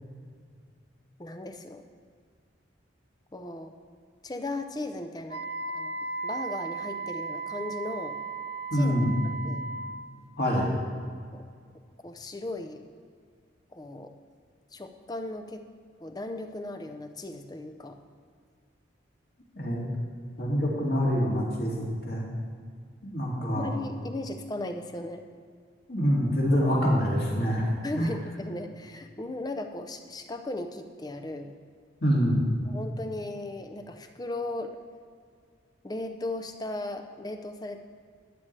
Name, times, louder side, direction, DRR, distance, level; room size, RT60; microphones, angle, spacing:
voice 1, 1.2-1.8 3.3-3.7 4.2-5.5 5.7-5.9 6.2-8.2 8.7-9.0 9.4-9.7 11.3-11.4 12.0-12.8 13.7-14.1 14.7-15.6 16.0-18.0 23.5-25.2 27.8-31.5 32.6-34.8 35.8-37.8, left 2 dB, 20° left, 6 dB, 0.6 m, -36 dB
Wind instrument woodwind instrument, 5.3-10.1, right 3 dB, 50° right, 0.7 m, -35 dB
voice 2, 8.7-9.1 10.4-10.7 19.6-19.8 20.4-22.2 23.1-23.7 25.9-27.7 27.9-28.1 32.0-32.4, equal, 55° left, -3 dB, 2.4 m, -25 dB
12.5 x 9.7 x 3.3 m, 2.1 s
head